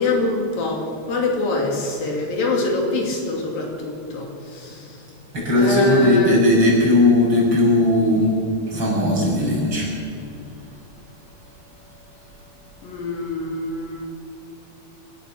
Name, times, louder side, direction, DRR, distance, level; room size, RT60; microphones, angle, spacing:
voice 1, 0.0-5.1 5.5-6.4 12.8-14.1, left 2 dB, 80° left, 0 dB, 4.6 m, -24 dB
voice 2, 5.3-8.3 8.7-9.9, left 1 dB, 30° right, -5 dB, 7.3 m, -17 dB
26.0 x 14.5 x 6.8 m, 2.6 s
omnidirectional pair, 4.0 m